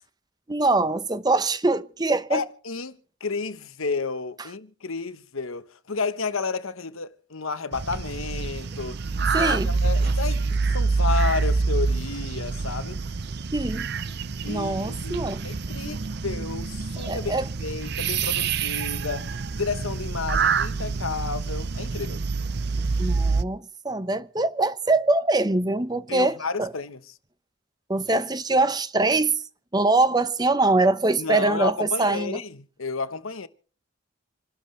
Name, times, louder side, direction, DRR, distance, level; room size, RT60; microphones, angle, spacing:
voice 1, 0.5-2.4 9.3-9.7 13.5-13.9 14.5-15.5 15.8-15.9 17.1-17.4 23.0-26.7 27.9-29.4 29.7-32.4, right 2 dB, 20° right, 0.7 m, -23 dB
voice 2, 2.3-9.0 9.4-13.0 14.4-22.2 26.1-27.0 31.2-33.5, left 4 dB, 90° left, 1.2 m, -31 dB
sound 1, 7.7-23.4, right 4 dB, 55° right, 0.6 m, -26 dB
28.0 x 12.0 x 3.3 m
head